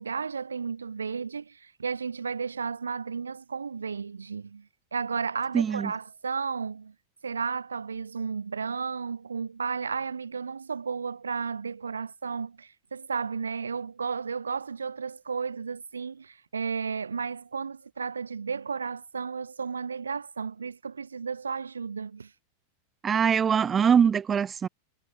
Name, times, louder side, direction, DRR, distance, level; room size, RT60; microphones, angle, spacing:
voice 1, 0.0-6.9 7.2-22.3, right 5 dB, 75° right, 0.9 m, -33 dB
voice 2, 5.5-5.9 23.0-24.7, right 7 dB, 20° right, 0.9 m, -23 dB
figure-of-eight pair, 90°, 0 cm